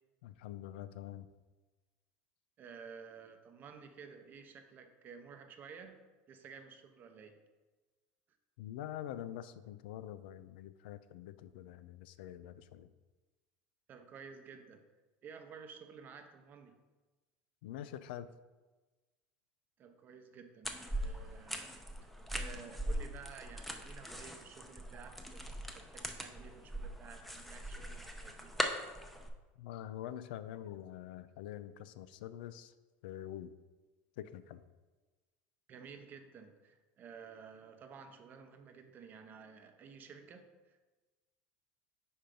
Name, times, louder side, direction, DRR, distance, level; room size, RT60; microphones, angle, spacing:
voice 1, 0.2-1.3 8.6-12.9 17.6-18.3 29.6-32.7 33.0-33.5 34.2-34.6, left 11 dB, 85° left, 13 dB, 0.3 m, -45 dB
voice 2, 2.6-6.0 6.3-7.4 13.9-14.8 15.2-16.8 19.8-21.7 22.0-25.5 25.7-28.5 35.7-40.8, right 6 dB, 35° right, 7 dB, 0.7 m, -53 dB
sound 1, 20.6-29.3, equal, ahead, 0.6 m, -41 dB
4.9 x 4.4 x 5.2 m, 1.2 s
supercardioid pair, 125°, 5 cm